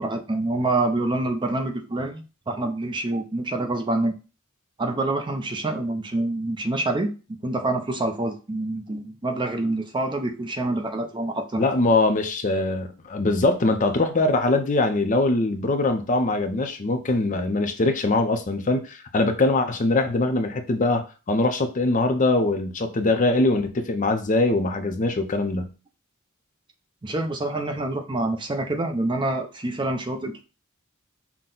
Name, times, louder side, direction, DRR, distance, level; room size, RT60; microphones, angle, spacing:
voice 1, 0.0-4.1 4.8-7.1 7.4-11.6 27.0-30.4, right 2 dB, 20° right, 5 dB, 0.5 m, -26 dB
voice 2, 11.6-25.7, left 2 dB, 35° left, 7 dB, 0.5 m, -22 dB
5.8 x 2.1 x 3.8 m, 0.33 s
head